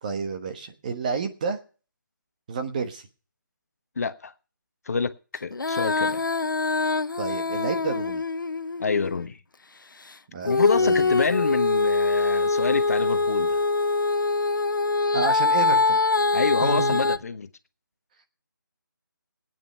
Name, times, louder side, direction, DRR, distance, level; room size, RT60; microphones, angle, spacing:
voice 1, 0.0-1.6 2.5-3.1 7.2-8.2 10.3-11.1 15.1-16.0 16.6-17.0, right 4 dB, 25° right, 1.2 m, -30 dB
voice 2, 4.0-4.3 4.9-5.1 5.4-6.2 8.8-9.4 10.4-13.6 16.3-17.5, left 5 dB, 50° left, 1.2 m, -27 dB
Female singing, 5.5-9.3 10.5-17.2, left 3 dB, 75° left, 1.0 m, -24 dB
18.0 x 9.2 x 5.6 m
figure-of-eight pair, 170°, 11 cm